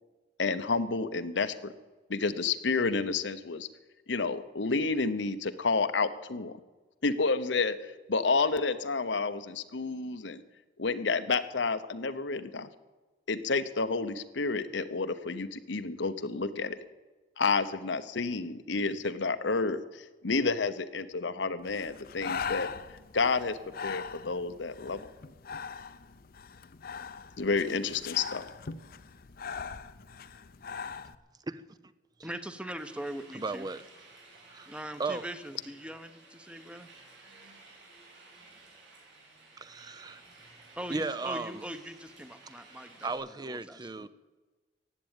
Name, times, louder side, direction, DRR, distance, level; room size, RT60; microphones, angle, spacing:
voice 1, 0.4-1.7 2.1-3.7 4.1-6.5 7.0-7.8 8.1-10.4 10.8-12.7 13.3-16.8 17.4-22.7 23.1-25.1 27.4-28.5, left 4 dB, 85° left, 0.9 m, -30 dB
Breathing, 21.7-31.1, left 6 dB, 55° left, 0.6 m, -41 dB
voice 2, 32.2-33.7 34.7-36.9 40.8-44.1, right 1 dB, 5° right, 0.8 m, -41 dB
sound 1, 32.8-43.2, right 3 dB, 90° right, 5.9 m, -55 dB
voice 3, 33.3-33.8 34.5-34.7 35.0-35.3 39.6-40.2 40.9-41.6 43.0-44.1, right 3 dB, 20° right, 0.5 m, -35 dB
15.0 x 9.1 x 9.0 m
head